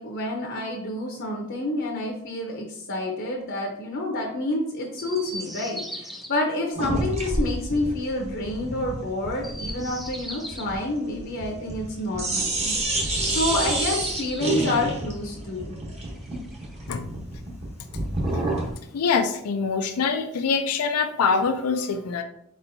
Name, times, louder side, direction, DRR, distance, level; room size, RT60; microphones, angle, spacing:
voice 1, 0.0-15.8, left 1 dB, 55° left, -1 dB, 0.7 m, -28 dB
Chirp tweet, 4.9-6.3 9.3-10.7 13.1-14.6 16.0-17.1 18.1-19.1, equal, ahead, 0.4 m, -39 dB
sound 1, 6.8-11.9 12.1-18.7, right 2 dB, 30° right, 1.0 m, -29 dB
voice 2, 18.9-22.2, left 5 dB, 85° left, 7 dB, 0.4 m, -24 dB
4.4 x 4.2 x 2.7 m, 0.74 s
head